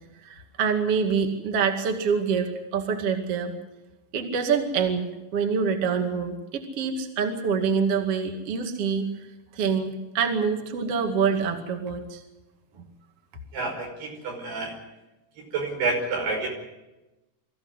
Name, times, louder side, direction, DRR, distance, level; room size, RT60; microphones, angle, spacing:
voice 1, 0.2-3.5 4.1-9.1 9.5-12.2 12.8-12.9, right 6 dB, 45° right, 4 dB, 2.8 m, -26 dB
voice 2, 13.5-14.8 15.4-16.5, right 3 dB, 85° right, 2 dB, 7.6 m, -29 dB
24.5 x 15.0 x 9.8 m, 1.0 s
omnidirectional pair, 4.5 m